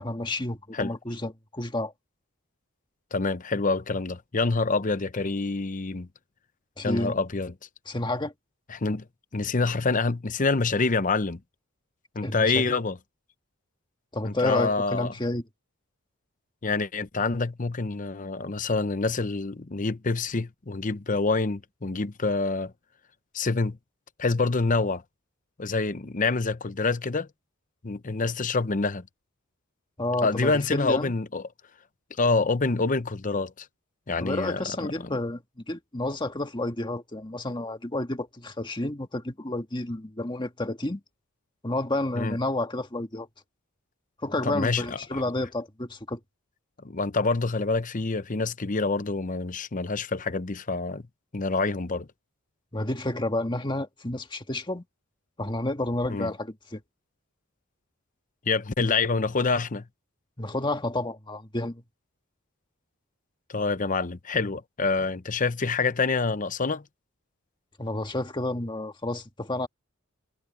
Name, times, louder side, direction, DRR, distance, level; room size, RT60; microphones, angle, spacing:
voice 1, 0.0-1.9 6.8-7.2 7.9-8.3 12.2-12.7 14.1-15.4 30.0-31.1 34.2-35.4 35.7-41.0 41.6-43.3 44.2-46.2 52.7-54.8 55.4-56.8 60.4-61.8 67.8-69.7, left 2 dB, 20° left, 1.6 m, -30 dB
voice 2, 3.1-6.1 6.8-7.5 8.7-9.0 9.3-11.4 12.1-13.0 14.2-15.1 16.6-22.7 23.3-23.8 24.2-25.0 25.6-27.3 27.8-29.0 30.2-31.5 32.2-33.7 34.1-35.1 42.1-42.4 44.5-45.2 46.8-51.0 51.3-52.1 56.1-56.3 58.5-59.8 63.5-66.8, left 3 dB, 35° left, 0.8 m, -26 dB
head